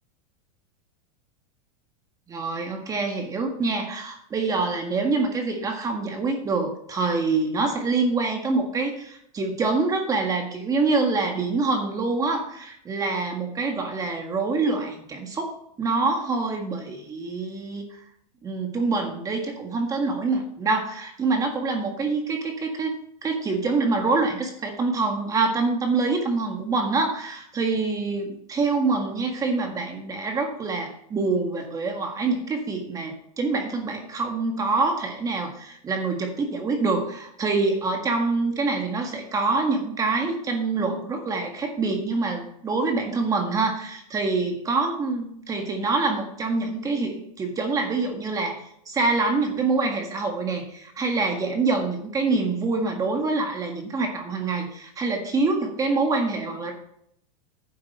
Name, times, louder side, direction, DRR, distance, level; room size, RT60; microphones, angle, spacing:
voice 1, 2.3-18.0 18.4-22.9 23.2-56.7, right 3 dB, 20° right, 3 dB, 1.7 m, -25 dB
10.5 x 7.6 x 4.3 m, 0.71 s
supercardioid pair, 140°, 18 cm